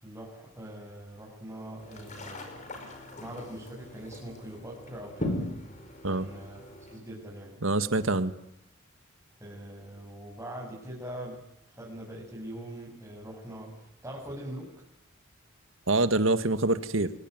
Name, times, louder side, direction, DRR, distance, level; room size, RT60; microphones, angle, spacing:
voice 1, 0.0-2.6 3.2-5.4 6.0-6.6 6.9-7.6 9.4-11.4 11.7-14.7, right 1 dB, 15° right, -4 dB, 7.2 m, -42 dB
sound 1, 1.8-7.0, left 1 dB, 35° left, 5.3 m, -39 dB
voice 2, 7.6-8.3 15.9-17.1, right 2 dB, 75° right, 11 dB, 1.8 m, -25 dB
26.5 x 22.5 x 9.5 m, 0.79 s
head